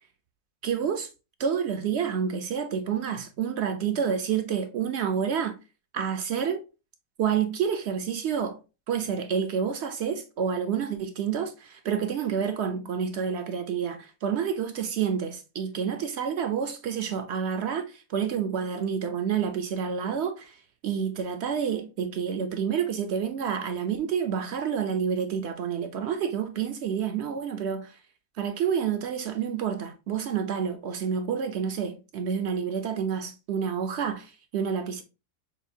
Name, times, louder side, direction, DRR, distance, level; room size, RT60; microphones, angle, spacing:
voice 1, 0.6-1.1 1.4-5.6 5.9-6.6 7.2-8.6 8.9-20.6 20.8-28.0 28.4-35.0, right 7 dB, 65° right, 0.7 m, -29 dB
6.2 x 2.5 x 2.6 m
omnidirectional pair, 1.5 m